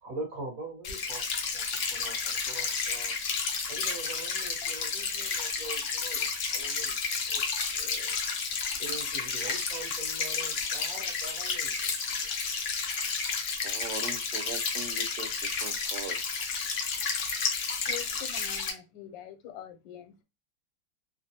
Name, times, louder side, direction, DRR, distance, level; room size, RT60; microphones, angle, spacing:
voice 1, 0.0-1.2 1.5-1.6 1.9-3.1 3.7-8.2 8.6-12.3, right 2 dB, 55° right, 1.3 m, -43 dB
sound 1, 0.8-18.7, left 5 dB, 65° left, 0.7 m, -31 dB
voice 2, 13.6-16.2, right 5 dB, 75° right, 1.2 m, -40 dB
voice 3, 17.8-20.2, left 11 dB, 80° left, 1.3 m, -44 dB
3.2 x 2.1 x 2.7 m
omnidirectional pair, 2.0 m